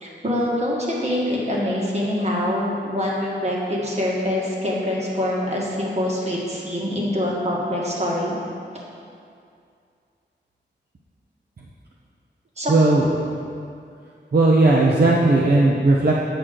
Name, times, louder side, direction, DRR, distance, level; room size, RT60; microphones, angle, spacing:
voice 1, 0.0-8.4 12.6-12.7, left 1 dB, 35° right, -4 dB, 1.6 m, -24 dB
voice 2, 12.7-13.2 14.3-16.2, right 2 dB, 55° right, -3 dB, 0.7 m, -16 dB
8.4 x 6.2 x 3.8 m, 2.4 s
wide cardioid pair, 90°, 19 cm